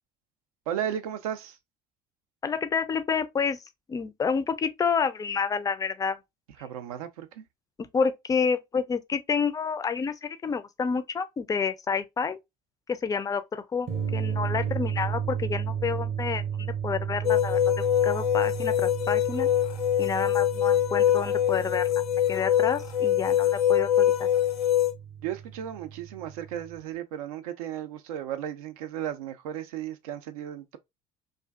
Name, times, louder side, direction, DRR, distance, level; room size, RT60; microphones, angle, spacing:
voice 1, 0.7-1.6 6.6-7.4 14.7-14.8 25.2-30.8, right 10 dB, 75° right, 0.4 m, -35 dB
voice 2, 2.4-3.6 3.9-6.2 7.9-12.4 12.9-19.5 20.0-21.9 22.3-24.3, left 5 dB, 20° left, 0.3 m, -29 dB
sound 1, 13.9-26.8, right 8 dB, 35° right, 0.7 m, -34 dB
sound 2, 17.2-24.9, left 12 dB, 85° left, 0.5 m, -24 dB
2.5 x 2.3 x 2.2 m
figure-of-eight pair, 60°, 19 cm